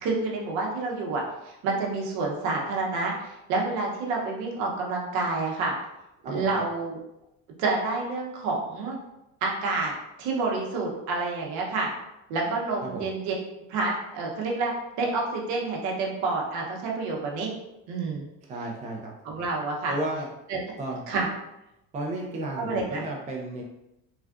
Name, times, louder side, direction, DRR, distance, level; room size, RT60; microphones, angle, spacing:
voice 1, 0.0-5.7 6.2-7.0 7.6-9.0 9.4-9.9 10.2-11.9 12.3-13.3 13.7-17.5 17.9-18.3 19.2-19.9 20.5-20.6 21.1-21.3 22.5-23.0, right 3 dB, 70° right, -1 dB, 0.9 m, -28 dB
voice 2, 6.2-6.6 12.8-13.1 18.5-19.1 19.9-20.3 20.8-21.0 21.9-23.6, right 1 dB, 25° right, -1 dB, 0.5 m, -33 dB
3.3 x 2.4 x 2.4 m, 0.89 s
cardioid pair, 120°, 30 cm